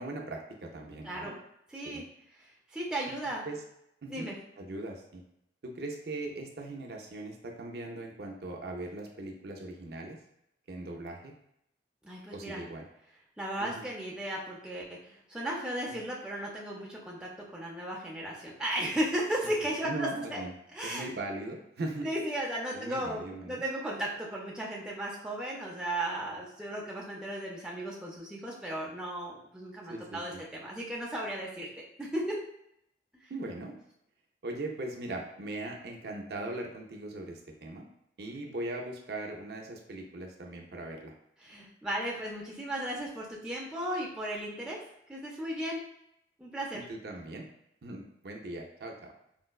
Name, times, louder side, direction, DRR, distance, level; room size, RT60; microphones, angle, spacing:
voice 1, 0.0-1.3 1.8-2.0 3.5-3.6 4.0-4.3 4.6-5.2 5.6-10.2 10.7-11.3 12.3-12.9 13.6-13.8 15.9-16.0 19.8-20.5 20.8-22.1 22.7-23.6 29.9-30.4 33.3-33.7 34.4-37.9 38.2-41.1 46.7-47.4 47.8-49.1, right 2 dB, 60° right, 1 dB, 0.5 m, -39 dB
voice 2, 1.0-1.4 1.7-2.0 2.4-3.4 4.1-4.4 12.0-12.6 13.4-20.4 20.7-21.1 22.0-31.7 32.0-32.4 41.4-44.8 45.1-45.8 46.4-46.8, right 1 dB, 5° right, -4 dB, 0.5 m, -35 dB
4.4 x 2.1 x 2.3 m, 0.78 s
head